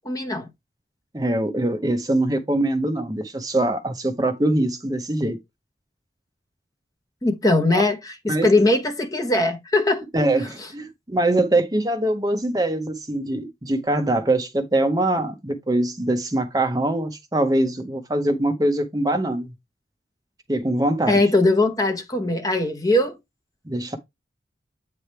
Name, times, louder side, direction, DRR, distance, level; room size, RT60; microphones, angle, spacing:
voice 1, 0.0-0.5 7.2-8.0 8.2-10.0 10.4-10.7 21.1-23.2, left 2 dB, 20° left, 0.9 m, -20 dB
voice 2, 1.1-5.4 7.7-7.8 8.3-8.4 10.1-19.5 20.5-21.2 23.7-24.0, right 1 dB, 20° right, 0.8 m, -23 dB
8.5 x 3.3 x 4.4 m
head